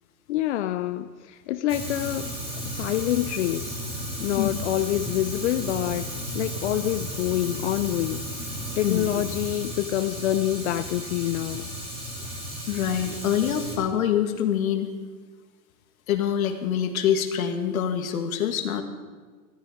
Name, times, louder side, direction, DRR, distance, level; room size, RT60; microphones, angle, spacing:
voice 1, 0.3-2.3 2.7-3.8 4.2-6.1 6.3-11.7, left 13 dB, 55° left, 10 dB, 0.6 m, -27 dB
Fire, 1.7-13.8, equal, 15° right, 3.3 m, -34 dB
voice 2, 12.7-14.9 16.1-18.8, left 9 dB, 75° left, 6 dB, 2.1 m, -25 dB
16.5 x 13.5 x 5.1 m, 1.4 s
supercardioid pair, 160°, 42 cm